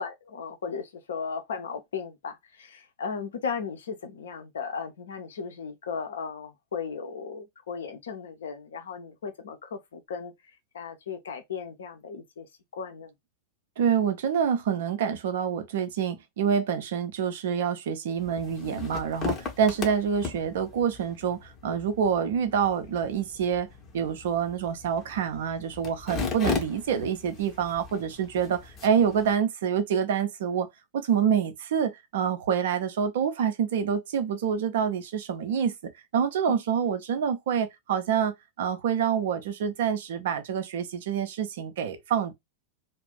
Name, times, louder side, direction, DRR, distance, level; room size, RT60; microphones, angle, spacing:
voice 1, 0.0-10.3 10.7-12.5 12.7-13.1 36.5-36.6, left 6 dB, 65° left, 0.6 m, -36 dB
voice 2, 13.8-23.7 23.9-30.7 30.9-42.3, right 7 dB, 55° right, 0.5 m, -27 dB
sound 1, 18.2-29.3, left 5 dB, 25° left, 0.8 m, -37 dB
2.4 x 2.0 x 3.7 m
figure-of-eight pair, 90°, 0 cm